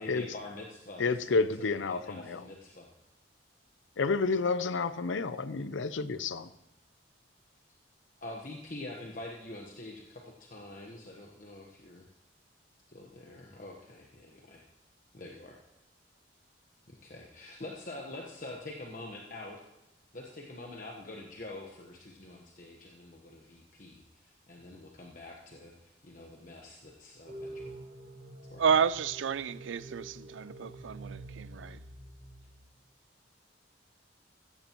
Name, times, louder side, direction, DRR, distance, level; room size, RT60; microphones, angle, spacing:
voice 1, 0.0-2.9 8.2-12.1 12.9-14.7 15.1-15.6 16.9-19.6 20.1-27.8 28.5-28.6, left 2 dB, 45° left, 1.2 m, -46 dB
voice 2, 1.0-2.4 4.0-6.5, left 4 dB, 80° left, 0.6 m, -30 dB
sound 1, 27.3-32.6, right 1 dB, 60° right, 2.5 m, -47 dB
voice 3, 28.6-31.8, right 6 dB, 80° right, 0.4 m, -30 dB
15.5 x 14.5 x 3.0 m
head